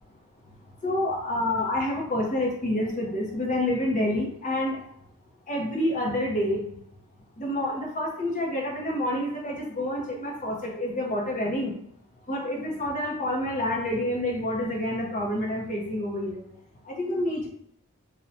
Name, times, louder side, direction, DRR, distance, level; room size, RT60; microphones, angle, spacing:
voice 1, 0.8-4.8 5.5-6.6 7.4-11.7 12.3-16.4 17.0-17.5, left 1 dB, 35° left, -1 dB, 0.9 m, -28 dB
2.7 x 2.3 x 4.1 m, 0.73 s
head